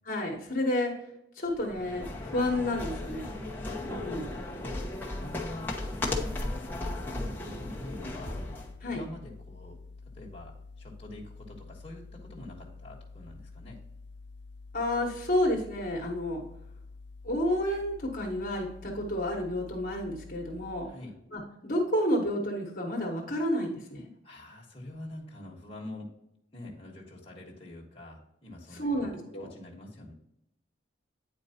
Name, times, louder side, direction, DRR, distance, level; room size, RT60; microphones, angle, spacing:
voice 1, 0.0-0.9 1.4-3.3 3.8-4.4 8.8-9.0 14.7-16.4 17.2-20.9 21.3-24.1 28.7-29.5, left 1 dB, 50° left, 0 dB, 1.2 m, -30 dB
sound 1, 1.5-8.7, left 2 dB, 10° left, 0.9 m, -35 dB
voice 2, 3.6-5.8 6.1-6.8 7.1-8.4 8.8-9.8 10.1-13.8 20.8-21.2 24.2-26.1 26.5-29.1 29.4-30.1, left 1 dB, 30° left, -2 dB, 1.3 m, -46 dB
sound 2, 7.5-20.9, left 3 dB, 70° left, 0.6 m, -48 dB
9.2 x 4.5 x 2.8 m, 0.81 s
head